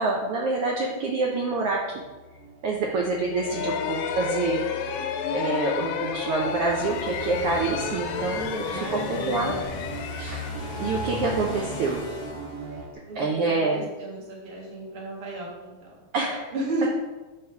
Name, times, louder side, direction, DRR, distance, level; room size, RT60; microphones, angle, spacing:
voice 1, 0.0-2.0 2.6-4.6 5.3-8.8 9.1-9.5 10.1-10.4 10.8-12.0 13.2-13.8 16.1-16.5, right 3 dB, 85° right, -1 dB, 1.2 m, -27 dB
sound 1, 1.5-12.9, equal, 60° right, 1.6 m, -40 dB
voice 2, 2.9-3.8 8.6-9.7 13.1-16.0 16.5-16.9, right 1 dB, 35° right, -3 dB, 0.7 m, -34 dB
sound 2, 3.3-12.0, left 8 dB, 80° left, 1.9 m, -32 dB
sound 3, 6.3-13.1, left 1 dB, 65° left, 0.9 m, -39 dB
8.1 x 3.3 x 5.7 m, 1.2 s
omnidirectional pair, 3.5 m